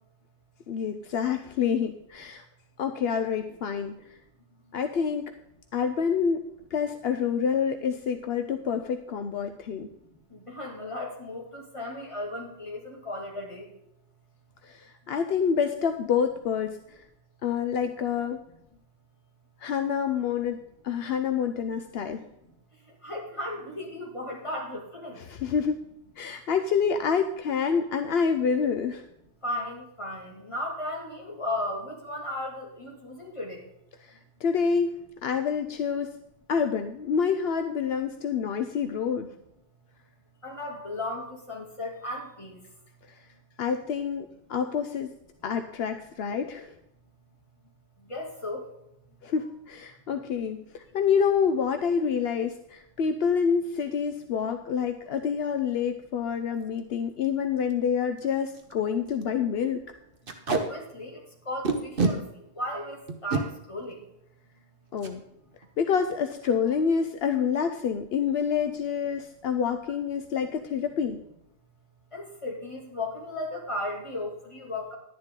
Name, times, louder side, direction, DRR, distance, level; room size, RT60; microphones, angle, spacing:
voice 1, 0.7-2.4 2.8-3.9 4.7-5.2 5.7-6.4 6.7-9.9 14.6-17.0 17.4-18.4 19.6-22.3 25.2-25.8 26.2-29.0 34.0-36.1 36.5-39.3 43.1-43.2 43.6-45.1 45.4-46.7 49.2-59.8 64.9-65.2 65.8-71.2, left 6 dB, 75° left, 7 dB, 0.9 m, -27 dB
voice 2, 10.3-13.7 23.0-25.2 29.4-33.6 40.4-42.6 48.0-48.7 60.5-64.0 72.1-74.9, left 1 dB, 30° left, -1 dB, 2.7 m, -35 dB
Packing tape duct tape, 56.6-56.8 57.2-57.3 57.6-57.7 58.2-58.3 58.5-58.7 59.1-59.2 60.3-60.6 61.6-62.1 63.1-63.4 65.0-65.2 65.5-65.7 65.9-66.4, right 3 dB, 60° right, 1.4 m, -27 dB
11.0 x 10.5 x 3.7 m, 0.80 s
omnidirectional pair, 1.0 m